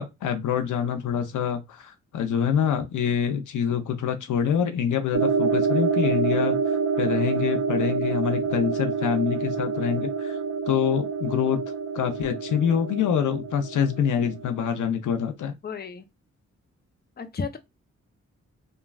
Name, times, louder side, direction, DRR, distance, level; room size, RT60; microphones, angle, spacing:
voice 1, 0.0-10.4 10.7-11.6 11.9-15.6, left 8 dB, 80° left, 0.5 m, -26 dB
sound 1, 5.1-14.6, right 5 dB, 60° right, 0.5 m, -27 dB
voice 2, 15.6-16.1 17.2-17.6, left 5 dB, 35° left, 0.5 m, -33 dB
3.1 x 2.3 x 2.3 m
cardioid pair, 65°, 30 cm